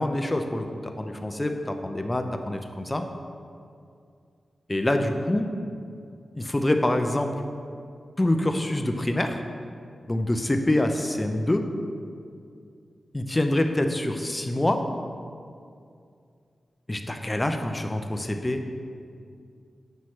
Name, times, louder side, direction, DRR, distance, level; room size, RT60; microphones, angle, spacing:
voice 1, 0.0-3.0 4.7-5.5 6.4-7.3 8.2-9.4 10.1-11.7 13.1-14.8 16.9-18.6, left 1 dB, 20° left, 5 dB, 0.5 m, -25 dB
7.9 x 5.7 x 3.1 m, 2.3 s
wide cardioid pair, 75°, 0 cm